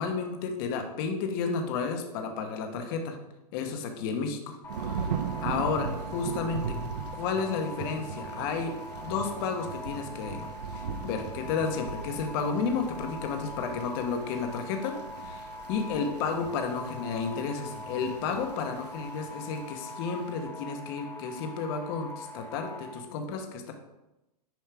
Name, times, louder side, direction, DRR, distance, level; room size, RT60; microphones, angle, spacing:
voice 1, 0.0-3.2 3.5-6.6 7.1-8.7 9.0-14.9 15.2-23.7, left 5 dB, 35° left, 5 dB, 1.0 m, -32 dB
sound 1, 4.6-23.0, left 1 dB, 10° left, 0.7 m, -42 dB
Thunder / Rain, 4.7-20.3, right 6 dB, 90° right, 1.0 m, -39 dB
9.2 x 5.4 x 3.5 m, 0.95 s
supercardioid pair, 165°, 20 cm